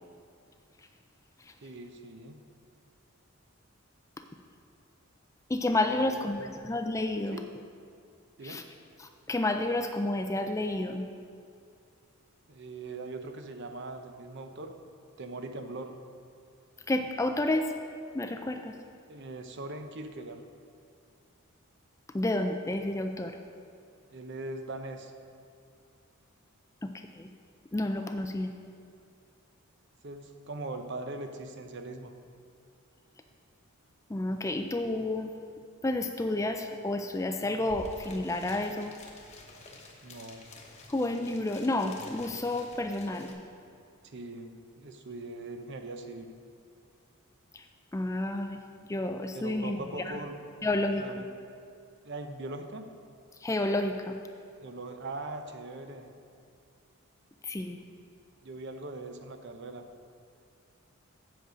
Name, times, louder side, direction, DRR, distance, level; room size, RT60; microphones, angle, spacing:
voice 1, 1.6-2.4 6.0-6.5 7.3-7.5 8.4-8.6 12.5-14.7 15.2-16.0 19.1-20.4 24.1-25.1 30.0-32.1 40.0-40.4 44.0-46.3 49.3-50.4 51.0-51.3 52.0-52.9 54.6-56.1 58.4-59.9, right 2 dB, 55° right, 7 dB, 0.7 m, -41 dB
voice 2, 5.5-7.4 8.4-8.6 9.0-11.1 16.9-17.7 18.1-18.8 22.1-23.4 26.8-27.3 27.7-28.5 34.1-35.3 35.8-38.9 40.9-43.3 47.5-47.7 47.9-50.2 50.6-51.0 53.4-54.2 57.4-57.8, left 2 dB, 15° left, 6 dB, 0.3 m, -30 dB
sound 1, 37.3-37.4 37.6-43.3, left 2 dB, 30° left, 1.0 m, -49 dB
7.9 x 7.9 x 5.0 m, 2.4 s
head